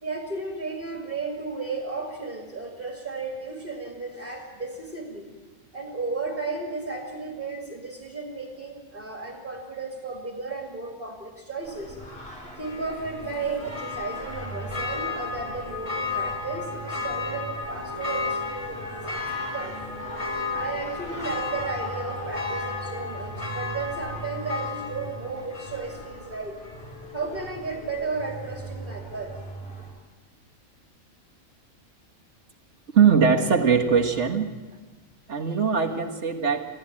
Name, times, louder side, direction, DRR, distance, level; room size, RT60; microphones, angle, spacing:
voice 1, 0.0-5.3 5.7-12.0 12.6-19.8 20.5-26.6 27.1-29.4, right 3 dB, 40° right, 2 dB, 2.5 m, -34 dB
Singing, 11.6-29.9, right 1 dB, 45° left, 4.9 m, -40 dB
Church bell, 12.6-26.3 26.6-26.7, left 4 dB, 25° left, 1.9 m, -34 dB
voice 2, 32.9-34.5 35.3-36.6, right 6 dB, 60° right, 4 dB, 1.9 m, -21 dB
24.0 x 15.0 x 8.8 m, 1.3 s
omnidirectional pair, 1.4 m